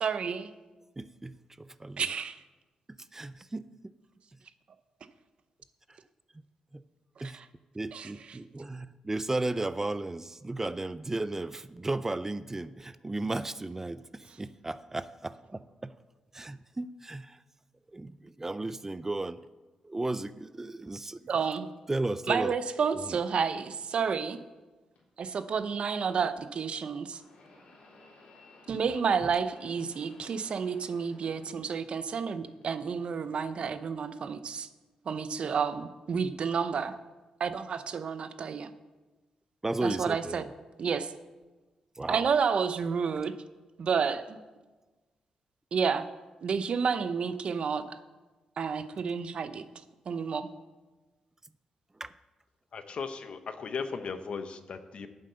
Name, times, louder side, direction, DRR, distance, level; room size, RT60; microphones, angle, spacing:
voice 1, 0.0-0.5 2.0-2.4 7.3-7.5 7.9-8.4 21.3-21.7 22.3-24.4 25.2-27.2 28.7-34.7 35.1-37.0 37.4-38.7 39.8-40.4 40.8-41.1 42.1-43.3 43.8-44.4 45.7-46.1 46.4-48.0 48.6-49.6 50.1-50.5, right 6 dB, 60° right, 12 dB, 0.7 m, -30 dB
voice 2, 1.0-2.1 3.1-3.9 6.7-6.8 7.2-7.4 7.7-15.9 16.3-17.4 17.9-19.4 19.8-21.2 21.9-22.6 23.1-23.2 39.6-40.5 42.0-42.3 52.0-52.1, right 2 dB, 20° right, 15 dB, 0.4 m, -34 dB
sound 1, 24.9-25.0 27.0-32.1 32.4-33.2 34.0-34.1 35.1-35.2, left 2 dB, 80° left, 3.7 m, -56 dB
voice 3, 52.7-55.1, left 5 dB, 60° left, 9 dB, 0.9 m, -37 dB
9.0 x 7.6 x 6.8 m, 1.2 s
cardioid pair, 80°, 2 cm